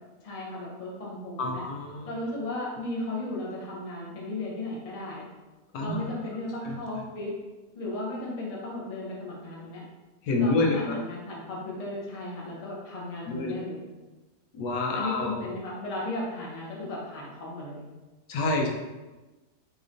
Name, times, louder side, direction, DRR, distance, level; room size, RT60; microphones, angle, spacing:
voice 1, 0.2-1.6 2.0-5.2 5.8-7.3 7.7-9.8 10.4-13.8 14.9-17.8, left 2 dB, 35° left, -5 dB, 0.6 m, -35 dB
voice 2, 1.4-2.1 5.7-6.0 6.6-6.8 10.2-11.0 13.3-13.6 14.5-15.4 18.3-18.7, left 2 dB, 90° left, 0 dB, 1.2 m, -27 dB
4.3 x 2.9 x 2.5 m, 1.2 s
omnidirectional pair, 1.7 m